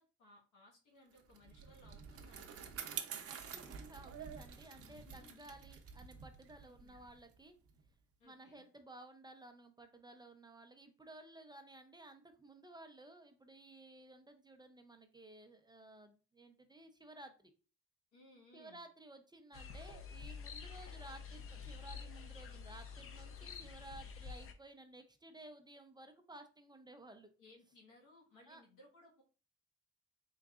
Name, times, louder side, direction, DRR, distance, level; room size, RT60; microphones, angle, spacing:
voice 1, 0.0-2.7 4.8-5.4 6.7-7.0 8.2-8.6 18.1-18.8 27.4-29.2, left 2 dB, 90° left, -1 dB, 1.4 m, -63 dB
Bicycle, 1.2-7.9, right 7 dB, 50° right, 0.7 m, -49 dB
voice 2, 3.3-7.6 8.2-17.5 18.5-27.3 28.5-28.6, right 2 dB, 15° right, 7 dB, 0.5 m, -56 dB
sound 1, 19.5-24.5, left 5 dB, 45° left, 0.6 m, -48 dB
3.8 x 3.6 x 2.4 m, 0.35 s
cardioid pair, 90°, 30 cm